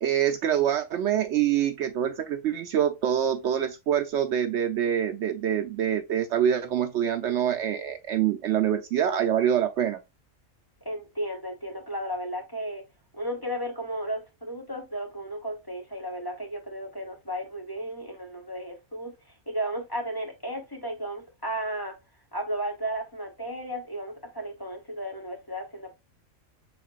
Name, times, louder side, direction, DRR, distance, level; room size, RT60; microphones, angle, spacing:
voice 1, 0.0-10.0, right 9 dB, 65° right, 0.8 m, -25 dB
voice 2, 10.8-12.8 13.1-19.1 19.5-21.9 22.3-25.9, right 1 dB, 20° left, 1.0 m, -34 dB
5.8 x 3.7 x 2.4 m
omnidirectional pair, 1.3 m